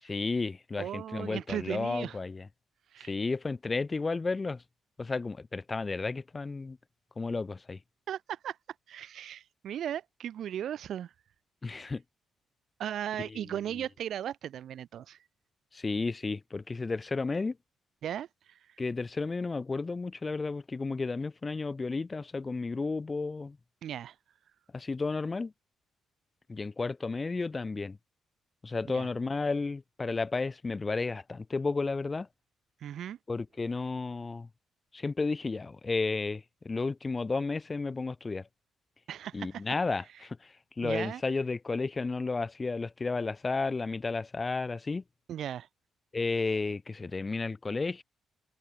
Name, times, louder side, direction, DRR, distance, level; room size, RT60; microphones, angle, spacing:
voice 1, 0.0-2.5 3.0-4.6 5.0-6.8 7.2-7.8 11.6-12.0 13.2-13.8 15.7-17.6 18.8-23.6 24.7-25.5 26.5-28.0 28.6-32.3 33.3-34.5 34.9-38.5 39.3-45.0 46.1-48.0, left 3 dB, 25° left, 3.1 m, -32 dB
voice 2, 0.8-2.2 2.9-3.1 8.1-8.6 8.9-11.1 12.8-15.2 18.0-18.6 23.8-24.1 28.9-29.1 32.8-33.2 39.1-39.6 40.8-41.2 45.3-45.7, right 10 dB, 70° right, 2.9 m, -37 dB
cardioid pair, 90°, 0 cm